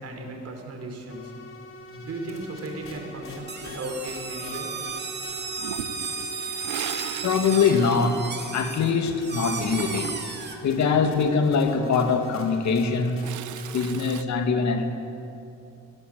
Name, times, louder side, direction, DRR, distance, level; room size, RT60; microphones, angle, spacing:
voice 1, 0.0-1.3 2.0-4.8 5.8-5.9, right 2 dB, 55° right, 3 dB, 5.1 m, -36 dB
sound 1, 1.1-14.2, equal, 45° left, 5.3 m, -43 dB
sound 2, 3.5-10.6, right 4 dB, 35° right, 2.9 m, -34 dB
Toilet flush, 5.5-9.0 9.3-10.5 12.5-14.2, right 13 dB, 75° right, 0.7 m, -38 dB
voice 2, 7.2-10.2 10.6-13.2 13.6-14.9, left 5 dB, 65° left, 6 dB, 2.4 m, -23 dB
22.0 x 18.0 x 8.2 m, 2.7 s
cardioid pair, 90°, 30 cm